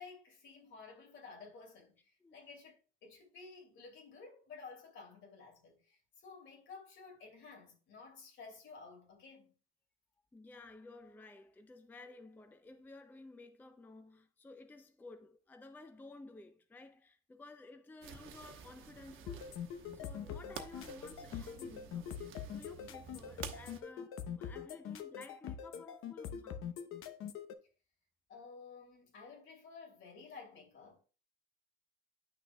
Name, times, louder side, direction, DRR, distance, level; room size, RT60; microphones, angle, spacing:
voice 1, 0.0-9.5 28.3-31.0, left 4 dB, 65° left, 2.8 m, -53 dB
voice 2, 10.3-22.1 22.5-26.7, left 2 dB, 10° left, 0.4 m, -54 dB
sound 1, 18.0-23.8, right 8 dB, 75° right, 1.0 m, -51 dB
sound 2, 19.3-27.5, left 8 dB, 85° left, 0.8 m, -43 dB
9.9 x 6.3 x 2.3 m
cardioid pair, 150°, 21 cm